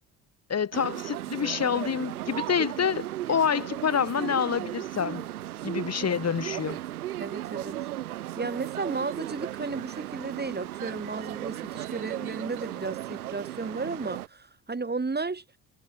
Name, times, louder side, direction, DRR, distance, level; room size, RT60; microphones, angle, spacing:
voice 1, 0.5-5.3 5.6-6.8, left 7 dB, 35° left, 3.0 m, -27 dB
sound 1, 0.7-14.3, right 14 dB, 80° right, 2.9 m, -36 dB
voice 2, 7.2-7.8 8.4-15.4, right 3 dB, 20° right, 7.3 m, -34 dB
figure-of-eight pair, 50°, 44 cm